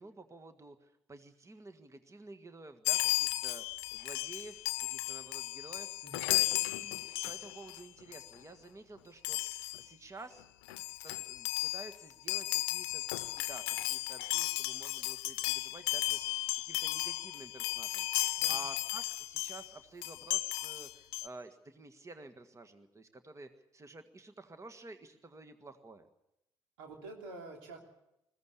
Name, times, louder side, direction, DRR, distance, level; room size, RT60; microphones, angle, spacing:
voice 1, 0.0-3.6 3.9-5.9 6.3-26.0, right 3 dB, 25° right, 8 dB, 1.7 m, -51 dB
Chime, 2.8-7.8 8.1-8.3 9.2-9.8 10.4-10.5 10.7-19.7 20.0-21.3, left 19 dB, 80° left, 0.8 m, -34 dB
voice 2, 26.8-27.8, right 3 dB, 80° right, 2 dB, 3.3 m, -47 dB
21.0 x 15.5 x 8.2 m, 0.86 s
hypercardioid pair, 50°, 12 cm